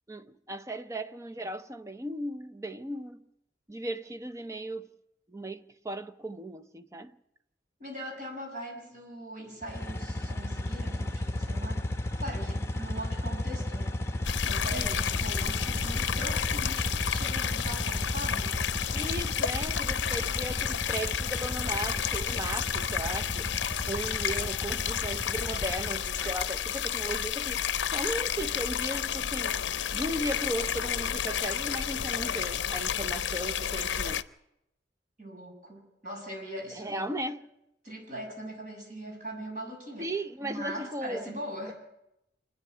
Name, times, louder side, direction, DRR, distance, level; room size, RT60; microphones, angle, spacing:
voice 1, 0.1-3.2 3.7-4.9 5.3-7.1 14.7-15.0 18.9-23.5 23.9-27.6 27.9-29.6 29.9-34.2 36.8-37.4 40.0-41.2, right 1 dB, 15° right, 0.6 m, -36 dB
voice 2, 7.8-11.9 12.2-13.9 14.4-18.6 35.2-37.1 37.8-40.1 40.4-41.7, right 1 dB, 45° right, 7.0 m, -40 dB
sound 1, 9.6-26.3, left 1 dB, 15° left, 1.0 m, -34 dB
sound 2, 14.2-34.2, left 8 dB, 80° left, 0.6 m, -31 dB
26.0 x 10.5 x 9.7 m
head